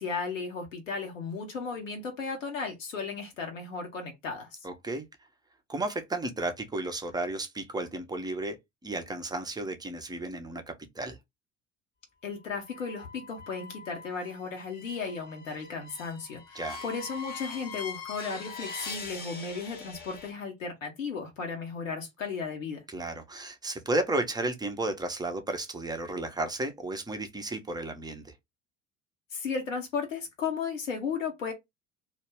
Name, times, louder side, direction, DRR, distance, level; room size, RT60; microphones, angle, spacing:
voice 1, 0.0-4.6 12.2-22.8 29.3-31.5, left 5 dB, 80° left, 0.7 m, -35 dB
voice 2, 4.6-5.1 5.7-8.6 8.8-10.6 10.9-11.2 16.5-16.8 22.9-28.2, right 2 dB, 10° right, 0.5 m, -33 dB
sound 1, 12.6-20.3, left 4 dB, 25° left, 0.7 m, -42 dB
2.3 x 2.0 x 3.2 m
figure-of-eight pair, 60°, 38 cm